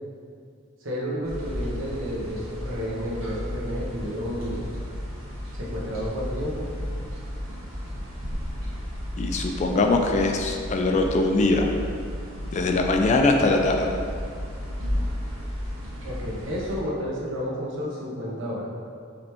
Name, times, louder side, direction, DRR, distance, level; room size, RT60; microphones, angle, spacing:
voice 1, 0.8-4.7 5.5-6.7 16.0-18.7, equal, 65° right, -5 dB, 0.9 m, -31 dB
sound 1, 1.2-16.8, equal, 90° right, 1.4 m, -33 dB
voice 2, 9.2-11.7 12.5-13.9, left 2 dB, 35° left, 3 dB, 0.3 m, -22 dB
5.1 x 3.2 x 2.9 m, 2.2 s
head